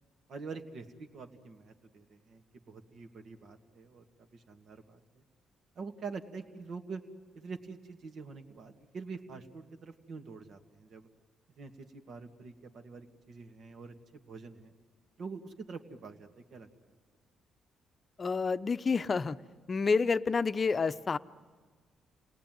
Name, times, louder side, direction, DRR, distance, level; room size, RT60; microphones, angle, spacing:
voice 1, 0.3-4.0 4.3-5.2 5.7-7.0 7.3-11.1 11.6-14.7 15.2-16.7, right 4 dB, 65° right, 5 dB, 2.3 m, -45 dB
voice 2, 18.2-19.4 19.7-21.2, left 4 dB, 35° left, 12 dB, 0.7 m, -29 dB
29.5 x 19.0 x 9.4 m, 1.5 s
cardioid pair, 90°, 0 cm